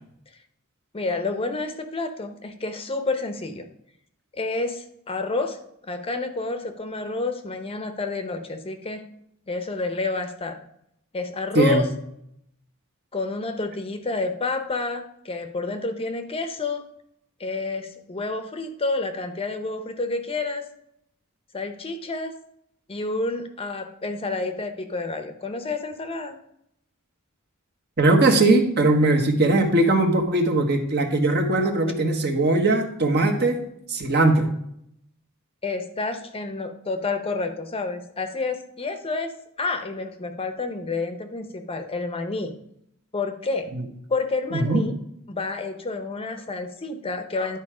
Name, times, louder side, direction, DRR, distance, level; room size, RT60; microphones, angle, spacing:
voice 1, 0.9-3.6 4.3-9.0 9.5-10.6 11.1-11.9 13.1-16.8 17.4-20.6 21.5-22.3 22.9-26.3 33.5-33.6 35.6-39.3 39.6-42.5 43.1-43.7 44.1-44.9 45.3-47.6, left 3 dB, 25° left, 7 dB, 0.7 m, -29 dB
voice 2, 28.0-33.6 33.9-34.5 43.7-43.8 44.5-44.8, right 2 dB, 50° right, 4 dB, 1.3 m, -20 dB
11.0 x 4.5 x 4.9 m, 0.75 s
head